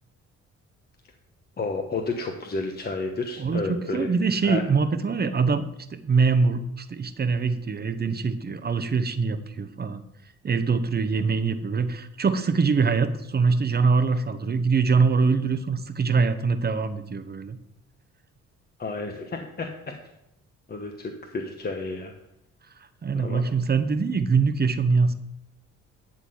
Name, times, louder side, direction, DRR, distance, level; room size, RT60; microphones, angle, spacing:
voice 1, 1.6-4.1 4.4-4.6 18.8-20.0 20.7-22.1 23.1-23.5, left 3 dB, 30° left, 3 dB, 1.2 m, -31 dB
voice 2, 3.4-10.0 10.4-17.6 22.8-25.1, right 4 dB, 30° right, 10 dB, 0.9 m, -23 dB
11.5 x 3.9 x 7.8 m, 0.82 s
cardioid pair, 90°, 30 cm